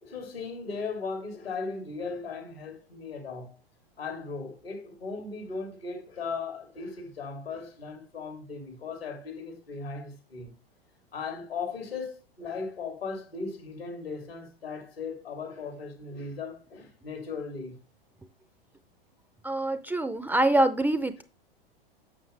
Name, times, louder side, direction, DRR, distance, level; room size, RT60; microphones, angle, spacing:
voice 1, 0.0-3.5 4.0-10.5 11.1-17.7, left 4 dB, 85° left, 3.1 m, -37 dB
voice 2, 19.4-21.2, right 1 dB, 5° right, 0.4 m, -25 dB
8.5 x 6.9 x 3.3 m
hypercardioid pair, 100°, 29 cm